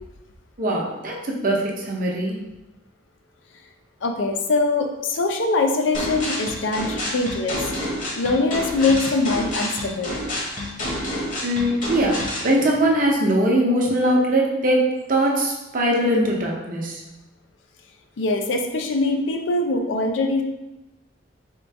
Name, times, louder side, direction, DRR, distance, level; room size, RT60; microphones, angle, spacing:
voice 1, 0.6-2.4 11.4-17.0, right 1 dB, 45° right, -2 dB, 0.8 m, -21 dB
voice 2, 4.0-7.7 8.2-10.2 18.2-20.4, left 3 dB, 75° left, 4 dB, 0.5 m, -22 dB
sound 1, 5.9-12.5, left 1 dB, 45° left, 1.1 m, -28 dB
3.7 x 2.5 x 4.6 m, 0.99 s
head